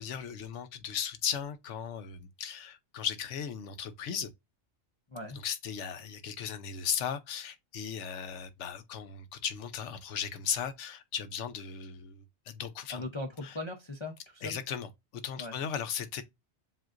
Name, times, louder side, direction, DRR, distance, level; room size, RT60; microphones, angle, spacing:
voice 1, 0.0-4.3 5.3-13.0 13.4-13.6 14.4-16.2, left 8 dB, 85° left, 1.0 m, -36 dB
voice 2, 12.9-14.6 15.4-15.6, left 2 dB, 30° left, 0.6 m, -39 dB
7.4 x 2.5 x 2.5 m
omnidirectional pair, 1.2 m